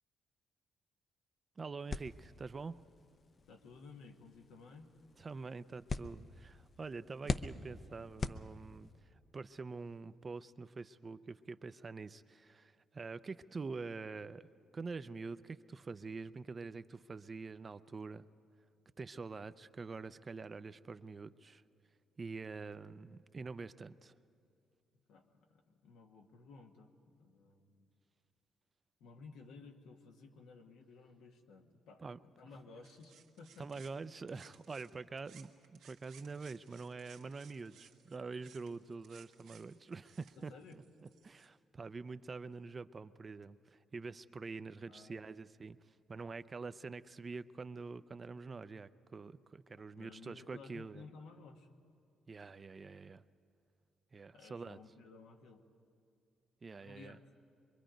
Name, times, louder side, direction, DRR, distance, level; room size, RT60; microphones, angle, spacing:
voice 1, 1.6-2.8 5.2-14.5 14.7-18.3 19.0-21.6 22.2-24.1 32.0-32.2 33.6-40.8 41.2-51.1 52.3-53.2 54.1-54.8 56.6-57.2, right 4 dB, 35° right, 13 dB, 0.5 m, -46 dB
sound 1, 1.9-9.0, left 4 dB, 40° left, 0.6 m, -44 dB
voice 2, 3.5-4.9 25.1-27.9 29.0-32.0 32.4-33.7 40.4-40.8 44.9-45.2 49.8-51.7 54.3-55.6 56.8-57.2, left 4 dB, 85° left, 3 dB, 1.5 m, -56 dB
sound 2, 32.8-34.9 35.2-41.5, right 8 dB, 80° right, 1.2 m, -62 dB
24.0 x 22.5 x 5.1 m, 2.4 s
cardioid pair, 90°, 0 cm